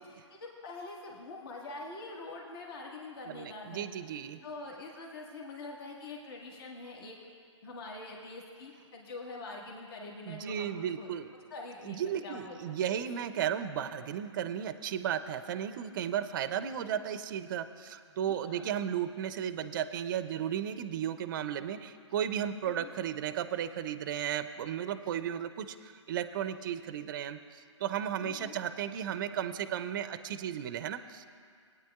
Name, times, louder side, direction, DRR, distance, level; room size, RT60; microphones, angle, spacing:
voice 1, 0.0-7.2 7.6-11.1 11.5-12.6 12.8-13.0 18.3-18.7 22.6-22.9 28.2-28.6, left 3 dB, 50° left, -1 dB, 1.6 m, -45 dB
voice 2, 3.3-4.4 10.3-11.3 11.8-31.3, right 9 dB, 40° right, 11 dB, 0.5 m, -34 dB
20.5 x 9.2 x 2.3 m, 2.1 s
hypercardioid pair, 150°, 16 cm